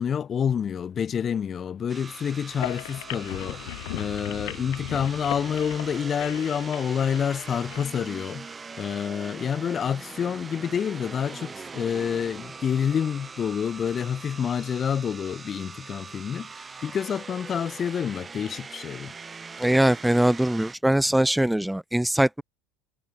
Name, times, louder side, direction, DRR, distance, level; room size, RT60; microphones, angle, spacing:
voice 1, 0.0-8.5 8.8-19.1, left 8 dB, 35° left, 1.1 m, -28 dB
sound 1, 1.9-20.8, right 5 dB, 25° right, 1.5 m, -42 dB
sound 2, 2.5-7.9, left 26 dB, 70° left, 0.8 m, -38 dB
voice 2, 19.6-22.4, right 1 dB, 5° right, 0.4 m, -22 dB
hypercardioid pair, 85°, 0 cm